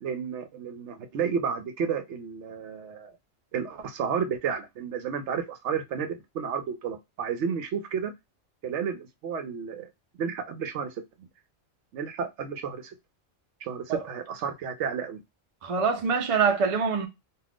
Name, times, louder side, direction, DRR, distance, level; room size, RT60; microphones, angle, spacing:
voice 1, 0.0-3.2 3.5-8.1 8.6-9.9 10.2-11.3 11.9-12.9 13.6-15.2, right 7 dB, 70° right, 0.9 m, -32 dB
voice 2, 15.6-17.1, right 5 dB, 45° right, 0.4 m, -24 dB
2.5 x 2.4 x 3.3 m
omnidirectional pair, 1.3 m